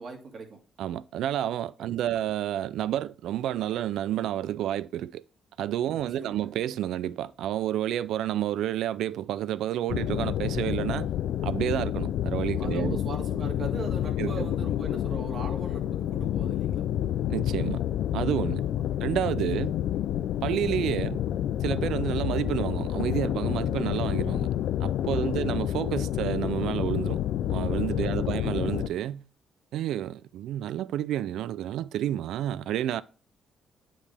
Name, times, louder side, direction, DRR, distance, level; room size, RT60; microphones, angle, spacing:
voice 1, 0.0-0.6 1.8-2.0 5.9-6.5 12.6-16.9 18.6-18.8 25.0-25.5 28.0-28.2, right 3 dB, 50° right, 2.0 m, -40 dB
voice 2, 0.8-5.2 5.6-11.1 11.4-13.0 14.2-14.5 17.3-17.8 18.1-18.6 19.0-19.7 20.4-21.3 21.6-24.5 24.8-27.2 27.5-29.2 29.7-33.0, right 12 dB, 80° right, 0.3 m, -30 dB
sound 1, 9.9-28.9, left 11 dB, 80° left, 0.3 m, -29 dB
8.8 x 5.0 x 3.4 m
cardioid pair, 90°, 0 cm